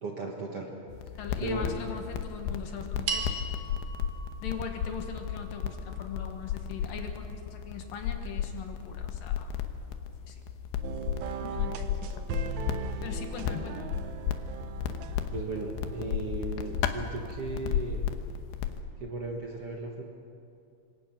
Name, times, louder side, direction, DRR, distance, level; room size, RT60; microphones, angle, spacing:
voice 1, 0.0-0.7 1.4-1.7 15.3-18.0 19.0-20.0, right 3 dB, 50° right, 0 dB, 1.9 m, -36 dB
sound 1, 0.9-18.8, left 8 dB, 90° left, 3.3 m, -34 dB
voice 2, 1.2-3.3 4.4-9.5 10.3-10.4 11.4-12.3 13.0-13.9, left 6 dB, 65° left, 4 dB, 3.0 m, -40 dB
sound 2, 3.1-7.5, right 4 dB, 70° right, 4.0 m, -40 dB
sound 3, 10.8-17.3, right 7 dB, 85° right, 1.6 m, -40 dB
26.5 x 23.0 x 6.1 m, 2.6 s
omnidirectional pair, 4.7 m